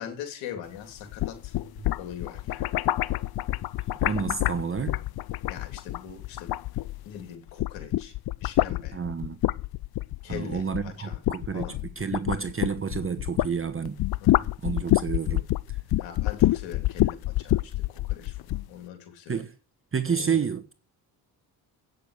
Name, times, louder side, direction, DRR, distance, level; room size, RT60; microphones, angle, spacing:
voice 1, 0.0-1.5 2.0-2.6 5.5-6.5 7.0-8.1 8.4-9.0 10.2-11.2 11.5-11.8 14.2-14.5 16.0-19.4 20.0-20.4, left 8 dB, 90° left, 3.2 m, -41 dB
sound 1, 1.0-7.2 7.5-13.6 13.9-18.7, left 15 dB, 55° left, 0.6 m, -27 dB
voice 2, 4.0-5.0 8.9-9.4 10.3-11.7 12.0-14.0 14.6-15.4 15.7-15.8 19.3-19.5 19.9-20.7, right 6 dB, 30° right, 1.1 m, -29 dB
9.5 x 6.7 x 8.1 m
supercardioid pair, 70°, 44 cm